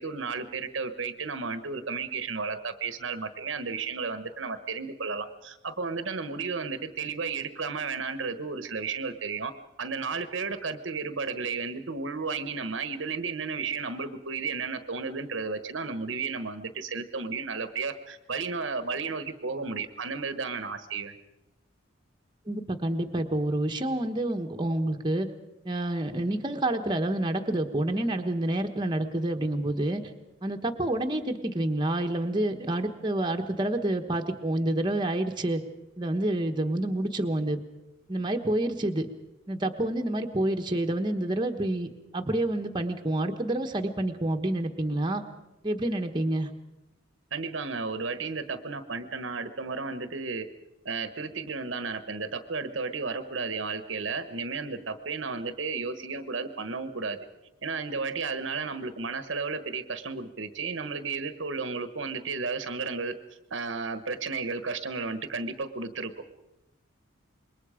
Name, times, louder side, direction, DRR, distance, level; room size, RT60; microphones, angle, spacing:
voice 1, 0.0-9.5 9.8-21.2 47.3-50.5 50.8-57.2 57.6-63.2 63.5-66.2, right 4 dB, 65° right, 10 dB, 1.2 m, -33 dB
voice 2, 22.5-25.3 25.6-30.0 30.4-35.6 36.0-37.6 38.1-39.1 39.5-45.2 45.6-46.5, right 1 dB, 25° right, 4 dB, 1.2 m, -28 dB
26.5 x 21.5 x 5.1 m, 0.95 s
head